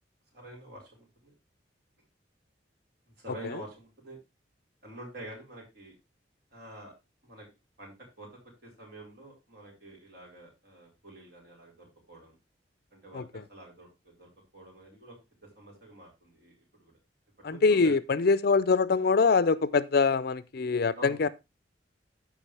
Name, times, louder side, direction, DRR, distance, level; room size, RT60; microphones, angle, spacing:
voice 1, 0.3-1.3 3.1-4.2 4.8-5.9 6.5-6.9 7.2-7.5 7.8-12.4 12.9-15.2 15.4-16.9 17.5-17.9 21.0-21.2, right 1 dB, 60° right, 4.7 m, -48 dB
voice 2, 17.4-21.3, left 4 dB, 55° left, 0.5 m, -24 dB
14.0 x 5.0 x 3.3 m
head